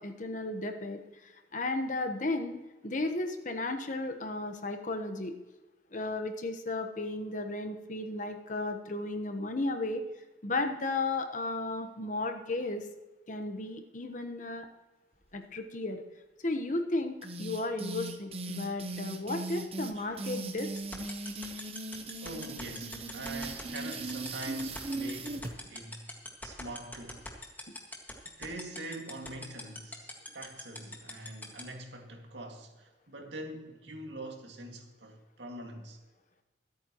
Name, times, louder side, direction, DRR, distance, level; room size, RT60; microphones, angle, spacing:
voice 1, 0.0-2.6 2.8-5.3 5.9-10.0 10.4-12.9 13.3-14.7 15.3-16.0 16.4-20.7, left 2 dB, 45° left, 1.1 m, -34 dB
sound 1, 17.2-25.5, right 2 dB, 35° right, 0.9 m, -38 dB
sound 2, 20.8-31.6, left 2 dB, 10° left, 1.9 m, -41 dB
voice 2, 22.0-26.1 26.4-27.2 28.4-36.0, right 1 dB, 80° right, 2.2 m, -44 dB
25.0 x 8.8 x 3.0 m
head